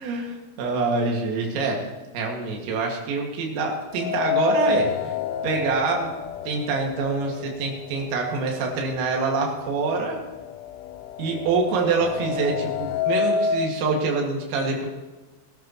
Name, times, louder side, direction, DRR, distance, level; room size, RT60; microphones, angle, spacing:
voice 1, 0.0-1.8 2.1-5.1 5.4-6.1 6.5-10.2 11.2-14.9, right 4 dB, 85° right, 0 dB, 4.6 m, -25 dB
sound 1, 3.9-8.0 8.3-8.4 9.4-9.5 9.9-13.7, left 5 dB, 80° left, 2.9 m, -28 dB
22.0 x 12.5 x 3.0 m, 1.2 s
omnidirectional pair, 5.8 m